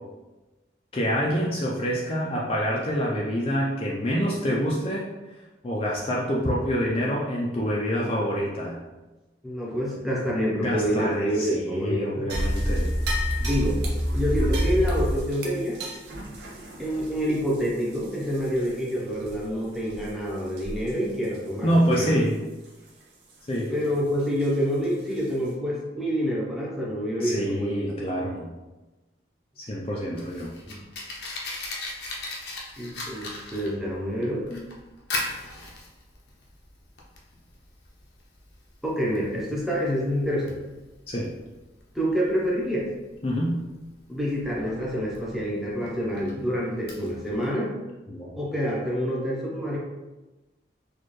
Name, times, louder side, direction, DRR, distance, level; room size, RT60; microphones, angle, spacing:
voice 1, 0.9-5.1 5.6-8.8 10.6-12.9 21.6-22.4 23.5-23.7 27.2-28.5 29.6-30.5 41.1-41.3 43.2-43.6 48.1-48.3, equal, 35° left, -4 dB, 0.5 m, -26 dB
voice 2, 9.4-12.3 13.4-13.8 14.1-15.8 16.8-22.2 23.7-27.8 30.7-30.8 32.8-34.6 38.8-40.6 41.9-42.9 44.1-47.7 48.3-49.8, equal, ahead, -6 dB, 0.8 m, -27 dB
sound 1, 12.3-18.9 19.2-19.4 19.9-20.1 20.6-20.9 21.2-21.4 21.9-22.0 24.4-24.5 25.1-25.2, equal, 70° right, 0.7 m, -28 dB
Fire, 29.8-47.5, left 2 dB, 70° left, 0.7 m, -39 dB
4.2 x 2.4 x 3.1 m, 1.1 s
head